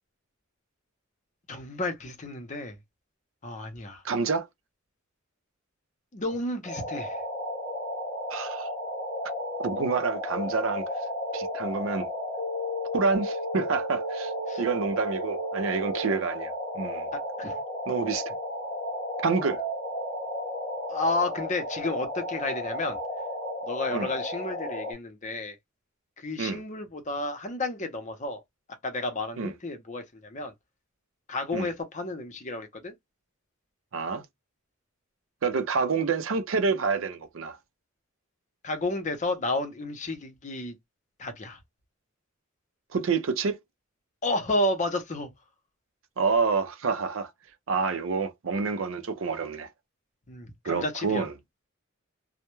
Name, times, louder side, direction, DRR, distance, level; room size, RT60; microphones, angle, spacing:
voice 1, 1.5-2.8 3.4-4.0 6.1-7.2 14.5-14.6 17.1-17.5 20.9-23.0 23.6-25.6 26.2-28.4 28.8-30.5 31.3-32.9 38.6-40.8 41.2-41.6 44.2-45.3 50.3-51.3, left 2 dB, 40° left, 0.7 m, -31 dB
voice 2, 4.0-4.5 8.3-8.7 9.6-10.8 11.3-12.1 12.9-14.3 14.6-17.1 17.9-18.3 19.2-19.6 23.9-24.1 26.4-26.6 29.4-29.5 31.5-31.7 33.9-34.2 35.4-37.6 42.9-43.6 46.2-47.3 47.7-49.7 50.6-51.3, right 5 dB, 70° right, 0.5 m, -28 dB
sound 1, 6.6-24.9, left 1 dB, 15° left, 0.9 m, -33 dB
2.2 x 2.1 x 3.0 m
head